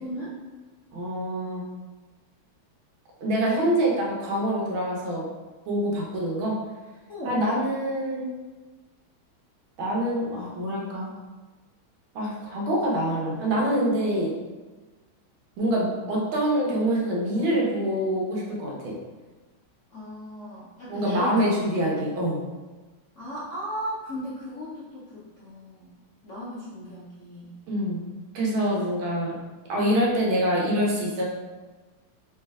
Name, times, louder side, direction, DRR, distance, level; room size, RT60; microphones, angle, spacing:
voice 1, 0.0-0.3 3.5-3.7 7.1-7.4 19.9-21.4 21.7-21.8 23.2-25.9 26.2-27.6, equal, 60° left, -9 dB, 0.8 m, -36 dB
voice 2, 0.9-1.6 3.2-5.3 5.7-6.6 7.2-8.3 9.8-11.1 12.2-14.3 15.6-18.9 20.9-22.4 27.7-28.0 28.3-29.3 29.7-31.2, equal, 75° right, -3 dB, 1.8 m, -25 dB
3.7 x 3.3 x 3.5 m, 1.3 s
omnidirectional pair, 2.3 m